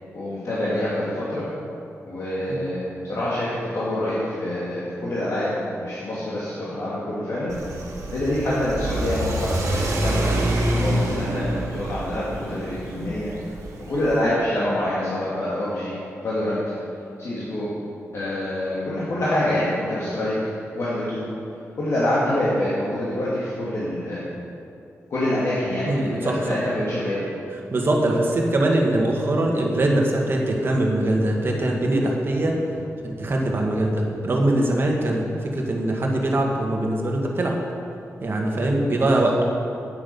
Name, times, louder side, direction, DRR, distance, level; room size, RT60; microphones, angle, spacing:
voice 1, 0.1-1.5 2.1-7.7 8.1-13.3 13.9-16.6 17.2-17.7 18.1-20.4 20.8-21.2 21.8-24.3 25.1-26.2 26.5-27.2, left 1 dB, 65° left, -9 dB, 2.1 m, -26 dB
Car / Accelerating revving vroom, 7.5-14.2, right 1 dB, 85° right, 1.5 m, -27 dB
voice 2, 25.9-26.6 27.7-32.5 33.0-37.5 38.2-39.4, right 1 dB, 45° right, 0 dB, 1.6 m, -22 dB
10.0 x 8.4 x 5.4 m, 2.6 s
wide cardioid pair, 115°, 5 cm